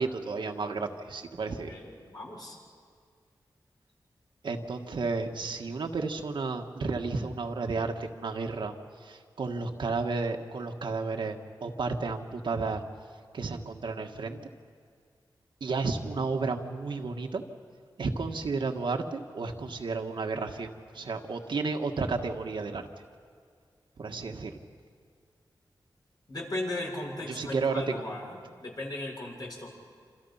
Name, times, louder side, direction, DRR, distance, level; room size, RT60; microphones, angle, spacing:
voice 1, 0.0-1.7 4.4-8.8 9.0-12.8 13.3-14.4 15.6-17.4 18.0-22.9 24.0-24.6 27.3-27.8, right 4 dB, 80° right, 4 dB, 1.7 m, -32 dB
voice 2, 1.7-2.6 26.3-29.7, left 1 dB, 55° left, -2 dB, 7.2 m, -37 dB
27.5 x 27.0 x 5.8 m, 2.1 s
wide cardioid pair, 70°, 8 cm